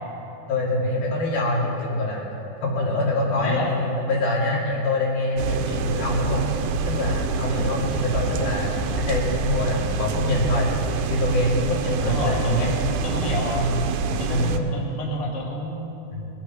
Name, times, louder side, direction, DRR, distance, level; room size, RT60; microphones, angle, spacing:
voice 1, 0.5-2.3 2.6-6.5 6.9-8.7 9.1-10.7 11.1-12.7 13.5-13.8 14.1-14.8 16.1-16.3, left 1 dB, 75° left, -5 dB, 4.6 m, -25 dB
voice 2, 3.4-3.8 7.5-7.7 12.0-13.7 14.2-15.9, equal, 15° left, -4 dB, 1.6 m, -29 dB
sound 1, 5.4-14.6, right 4 dB, 90° right, 2.7 m, -26 dB
22.0 x 8.6 x 6.1 m, 3.0 s
omnidirectional pair, 4.3 m